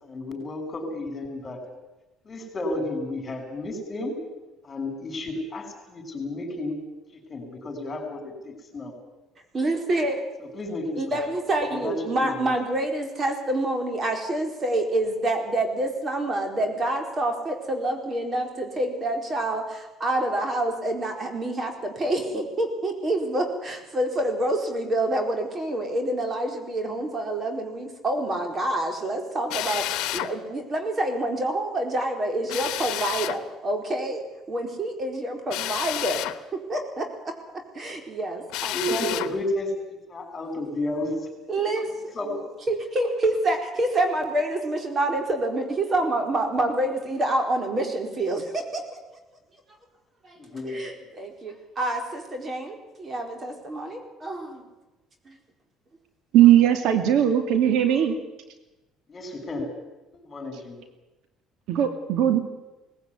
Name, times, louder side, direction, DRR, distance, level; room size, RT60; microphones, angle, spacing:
voice 1, 0.0-1.6 2.2-4.2 4.6-6.8 7.3-8.9 10.5-11.0 11.7-12.5 38.7-39.7 40.1-41.1 41.5-41.6 42.1-42.4 50.4-50.8 59.1-59.7 60.1-60.8, left 1 dB, 30° left, 5 dB, 6.3 m, -32 dB
voice 2, 9.5-10.2 11.0-36.3 36.5-37.1 37.7-39.3 41.5-42.1 42.7-48.8 50.2-50.4 50.6-54.6 55.2-55.4, right 1 dB, 35° right, 4 dB, 4.3 m, -27 dB
Drill, 29.5-30.3 32.5-33.4 35.5-36.4 38.5-39.3, left 16 dB, 75° left, 1.1 m, -30 dB
voice 3, 56.3-58.2 61.7-62.4, right 11 dB, 70° right, 7 dB, 2.5 m, -19 dB
19.0 x 16.0 x 9.7 m, 1.1 s
supercardioid pair, 95°, 0 cm